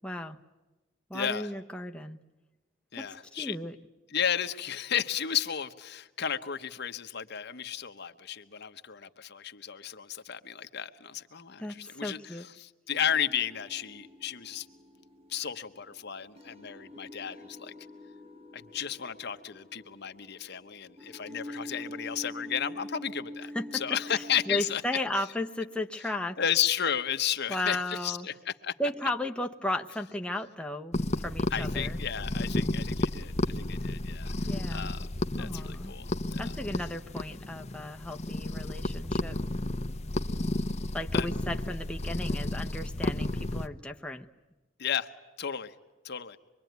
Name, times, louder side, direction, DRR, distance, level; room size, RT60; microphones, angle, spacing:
voice 1, 0.0-0.4 1.1-2.2 2.9-3.7 11.6-12.5 23.5-26.4 27.5-28.3 28.8-31.0 31.2-32.0 34.4-34.9 35.4-35.9 36.4-39.4 40.9-44.3, left 1 dB, 5° left, 3 dB, 0.9 m, -35 dB
voice 2, 1.1-1.5 2.9-3.6 4.1-12.2 12.6-14.7 15.3-17.7 18.5-24.8 26.4-28.7 31.5-35.0 35.4-36.1 36.3-36.5 41.1-41.3 44.8-45.1 45.4-45.7 46.0-46.4, left 9 dB, 55° left, 8 dB, 1.0 m, -33 dB
sound 1, 12.9-24.6, left 1 dB, 30° right, 1.6 m, -46 dB
sound 2, 30.9-43.7, left 1 dB, 35° left, 0.8 m, -32 dB
25.0 x 23.0 x 9.4 m, 1.2 s
head